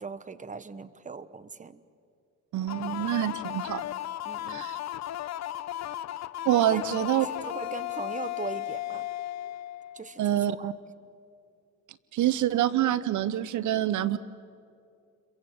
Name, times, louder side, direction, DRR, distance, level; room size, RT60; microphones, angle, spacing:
voice 1, 0.0-1.8 4.2-4.7 6.7-6.8 7.1-9.1 9.9-10.7, right 4 dB, 25° right, 14 dB, 1.1 m, -40 dB
voice 2, 2.5-3.8 4.5-4.8 6.4-7.3 10.2-10.7 12.1-14.2, right 12 dB, 75° right, 16 dB, 0.8 m, -26 dB
sound 1, 2.7-10.3, left 13 dB, 60° left, 0.8 m, -35 dB
29.0 x 23.0 x 7.8 m, 2.4 s
cardioid pair, 90°, 30 cm